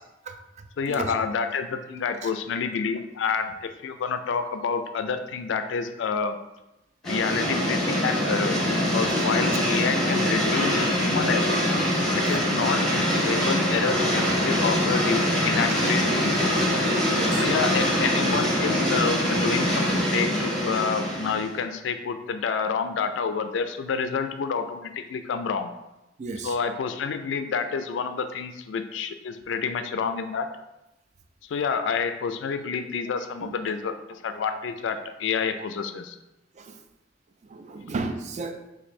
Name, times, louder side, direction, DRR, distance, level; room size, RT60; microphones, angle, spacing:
voice 1, 0.2-1.1 2.2-2.3 12.3-12.4 16.5-16.7 17.1-17.5 26.2-26.6 33.4-33.7 36.5-36.8 37.4-38.7, right 3 dB, 40° right, 6 dB, 0.4 m, -34 dB
voice 2, 0.8-6.4 7.0-11.6 12.1-16.6 17.4-25.7 26.4-30.5 31.4-36.2, left 5 dB, 70° left, 9 dB, 0.3 m, -28 dB
sound 1, 7.0-21.5, equal, 5° left, 1.3 m, -24 dB
3.1 x 2.6 x 4.2 m, 0.94 s
head